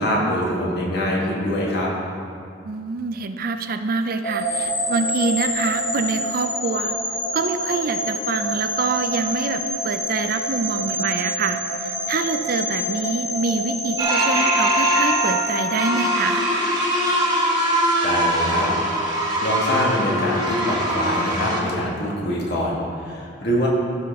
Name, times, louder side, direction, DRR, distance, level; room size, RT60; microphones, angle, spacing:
voice 1, 0.0-1.9 18.0-18.7 19.0-23.7, equal, 60° left, -3 dB, 2.0 m, -24 dB
voice 2, 2.6-7.0 7.3-16.5, right 4 dB, 50° right, 9 dB, 0.4 m, -26 dB
sound 1, 4.2-16.4, equal, 30° left, 1.5 m, -27 dB
sound 2, 14.0-21.6, equal, 20° right, 1.4 m, -22 dB
15.5 x 6.2 x 3.6 m, 2.4 s
head